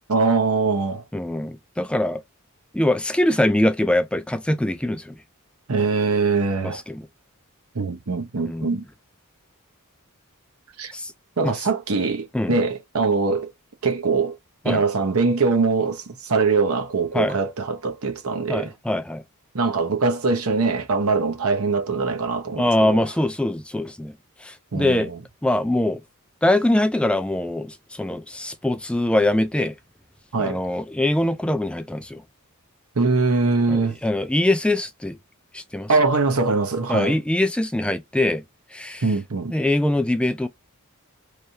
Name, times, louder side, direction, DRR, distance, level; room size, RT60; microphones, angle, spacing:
voice 1, 0.1-1.0 5.7-6.8 7.7-8.8 10.8-10.9 11.4-13.5 13.8-14.3 14.6-18.7 19.5-23.0 24.7-25.2 30.3-30.6 33.0-34.0 35.9-37.2 39.0-39.5, right 4 dB, 80° right, 0.9 m, -22 dB
voice 2, 1.1-2.2 2.7-5.2 6.6-7.1 8.4-8.8 10.9-11.1 11.4-11.5 12.3-12.6 14.7-14.8 17.1-17.4 18.5-19.2 22.6-24.1 24.4-25.1 25.4-26.0 26.4-29.7 30.4-32.2 33.7-35.2 35.5-35.9 36.9-38.4 38.7-39.0 39.5-40.5, left 1 dB, 5° left, 0.3 m, -23 dB
3.3 x 2.7 x 4.4 m
head